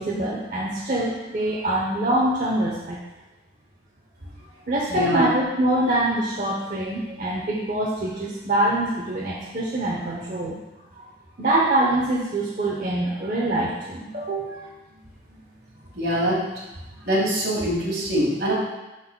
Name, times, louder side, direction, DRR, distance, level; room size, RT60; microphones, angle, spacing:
voice 1, 0.0-3.0 4.7-10.6 10.9-11.1 11.4-14.7, right 1 dB, 45° right, -5 dB, 0.8 m, -24 dB
voice 2, 4.9-5.3 16.0-16.4 17.1-18.5, right 1 dB, 65° right, -4 dB, 1.8 m, -23 dB
11.5 x 4.0 x 2.2 m, 1.0 s
head